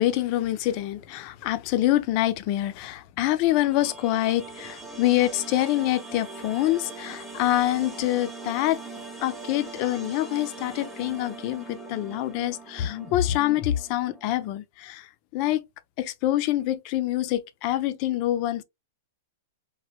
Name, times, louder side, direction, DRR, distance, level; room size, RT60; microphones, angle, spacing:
voice 1, 0.0-8.8 9.2-15.6 16.0-18.6, left 14 dB, 45° left, 0.4 m, -26 dB
sound 1, 3.4-14.5, right 3 dB, 5° right, 0.8 m, -41 dB
3.0 x 2.1 x 2.8 m
hypercardioid pair, 140°, 0 cm